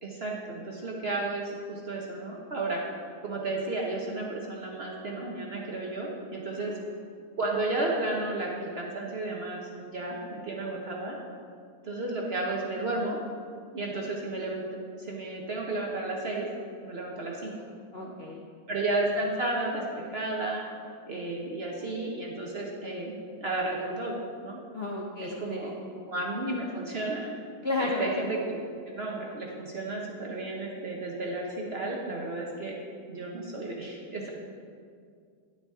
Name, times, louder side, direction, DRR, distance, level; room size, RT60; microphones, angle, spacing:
voice 1, 0.0-2.8 3.2-6.7 7.4-11.2 11.8-13.2 13.7-16.5 16.8-17.5 18.0-18.1 18.7-20.6 21.1-24.6 25.2-25.7 26.1-27.3 27.8-28.6 28.9-32.7 33.1-34.3, right 2 dB, 55° right, -2 dB, 0.7 m, -33 dB
voice 2, 17.9-18.4 24.7-25.8 27.6-28.0, left 2 dB, 70° left, -2 dB, 0.5 m, -33 dB
9.7 x 8.3 x 3.6 m, 2.2 s
omnidirectional pair, 2.2 m